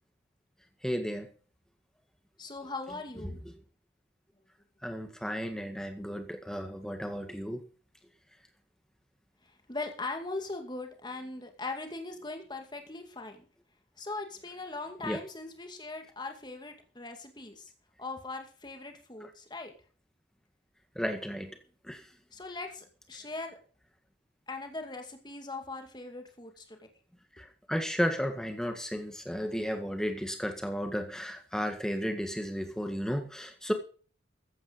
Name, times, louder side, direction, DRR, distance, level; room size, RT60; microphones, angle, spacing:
voice 1, 0.8-1.3 3.5-3.6 4.8-7.6 15.0-15.2 21.0-21.5 21.8-22.1 27.4-33.7, equal, 5° left, 6 dB, 1.8 m, -33 dB
voice 2, 2.4-3.4 9.4-13.4 14.0-17.7 18.0-19.7 22.3-23.6 24.5-26.9, left 3 dB, 25° left, 4 dB, 2.2 m, -40 dB
15.0 x 9.2 x 5.2 m, 0.40 s
head